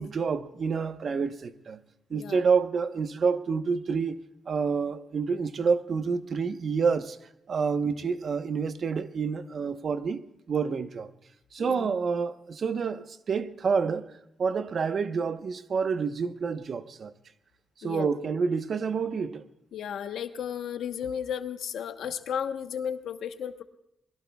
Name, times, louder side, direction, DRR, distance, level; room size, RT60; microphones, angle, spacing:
voice 1, 0.0-1.8 2.1-4.2 4.5-7.2 7.5-10.2 10.5-11.1 11.5-14.1 14.4-17.1 17.8-19.4, right 5 dB, 60° right, 1.0 m, -28 dB
voice 2, 11.6-11.9 17.8-18.1 19.7-23.6, left 8 dB, 90° left, 1.0 m, -34 dB
27.5 x 21.5 x 2.3 m
cardioid pair, 90°, 0 cm